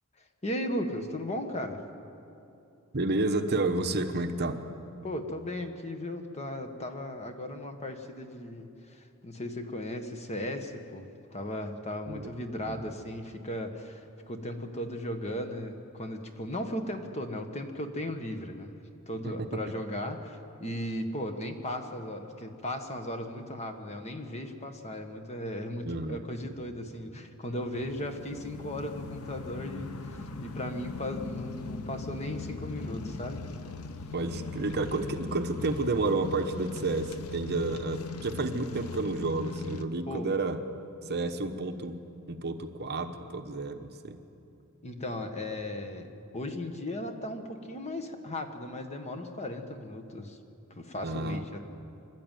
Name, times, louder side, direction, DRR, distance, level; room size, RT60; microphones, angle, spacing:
voice 1, 0.4-1.8 5.0-18.8 19.1-33.4 40.1-40.3 44.8-50.4 50.7-51.6, left 1 dB, 30° left, 6 dB, 1.5 m, -36 dB
voice 2, 2.9-4.6 12.1-12.3 12.7-12.9 25.8-26.2 34.1-40.6 41.0-42.0 42.3-44.2 51.0-51.6, right 2 dB, 50° right, 6 dB, 1.1 m, -30 dB
sound 1, 27.6-39.8, left 3 dB, 85° left, 0.9 m, -40 dB
25.5 x 12.5 x 9.2 m, 2.7 s
head